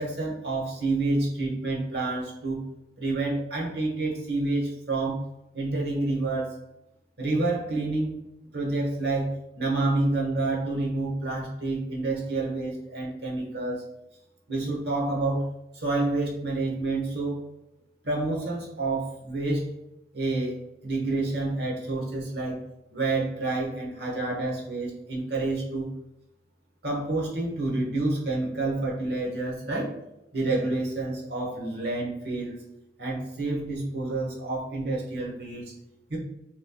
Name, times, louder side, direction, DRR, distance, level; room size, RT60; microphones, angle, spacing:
voice 1, 0.0-2.6 3.0-5.2 5.5-6.5 7.2-8.2 8.5-13.8 14.5-15.5 15.7-17.4 18.0-19.7 20.1-22.6 22.9-25.9 26.8-29.9 30.3-32.6 33.0-35.7 36.1-36.2, right 2 dB, 60° right, -2 dB, 1.3 m, -28 dB
6.0 x 3.2 x 2.3 m, 0.87 s
head